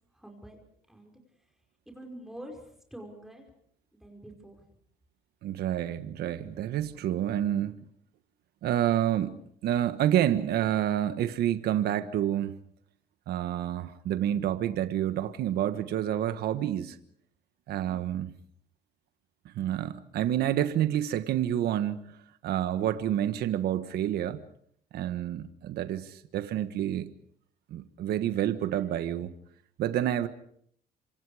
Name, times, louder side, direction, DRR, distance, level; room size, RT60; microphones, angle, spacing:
voice 1, 0.1-0.6 0.9-1.5 1.8-3.5 3.9-4.6 17.8-18.1, right 1 dB, ahead, 2 dB, 5.2 m, -47 dB
voice 2, 5.4-7.7 8.6-9.4 9.6-12.6 13.3-17.0 17.7-18.3 19.4-22.1 22.4-24.4 24.9-27.1 27.7-29.3 29.8-30.3, right 11 dB, 70° right, 10 dB, 1.4 m, -28 dB
27.0 x 27.0 x 5.0 m, 0.65 s
cardioid pair, 110°, 17 cm